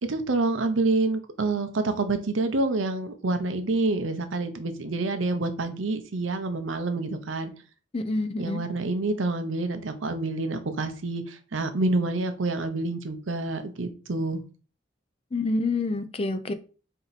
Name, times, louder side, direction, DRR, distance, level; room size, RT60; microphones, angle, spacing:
voice 1, 0.1-7.5 8.4-14.4, right 2 dB, 90° right, 0.7 m, -27 dB
voice 2, 7.9-8.6 15.3-16.5, left 2 dB, 30° left, 0.4 m, -27 dB
4.4 x 2.8 x 4.0 m
head